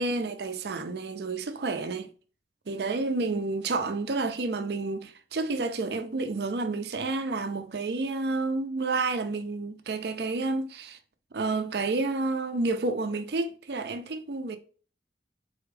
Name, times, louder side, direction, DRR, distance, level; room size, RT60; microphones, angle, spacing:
voice 1, 0.0-2.1 2.7-11.0 11.3-14.6, right 3 dB, 65° right, 0.5 m, -30 dB
4.1 x 3.4 x 3.3 m
head